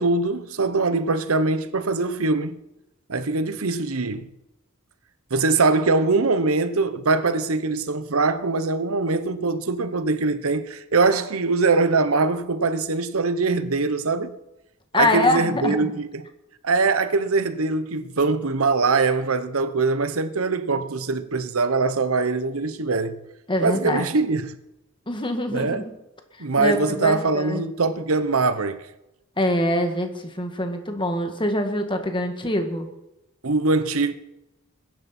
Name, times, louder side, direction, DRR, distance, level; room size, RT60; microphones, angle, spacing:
voice 1, 0.0-2.6 3.1-4.3 5.3-14.4 14.9-16.3 16.6-23.2 23.6-24.5 25.5-25.8 26.4-28.8 33.4-34.1, right 3 dB, 80° right, 1.0 m, -22 dB
voice 2, 14.9-15.9 23.5-24.1 25.1-25.9 26.6-27.6 29.4-30.1 30.4-32.9, left 1 dB, 25° left, 1.8 m, -24 dB
21.0 x 10.5 x 4.4 m
head